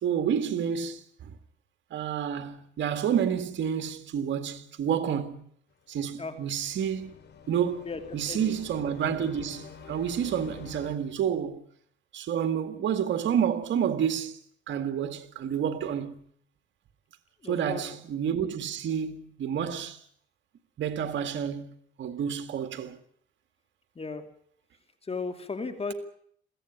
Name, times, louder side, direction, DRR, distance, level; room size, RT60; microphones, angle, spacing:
voice 1, 0.0-1.4 1.9-5.4 5.9-7.2 7.5-11.6 12.1-14.4 14.7-16.2 17.5-20.0 20.8-23.0, right 8 dB, 70° right, 2.0 m, -29 dB
sound 1, 5.9-11.0, left 6 dB, 60° left, 4.6 m, -48 dB
voice 2, 17.4-17.8 24.0-24.2 25.0-25.9, left 4 dB, 30° left, 2.6 m, -35 dB
23.0 x 16.0 x 9.9 m
cardioid pair, 90°, 20 cm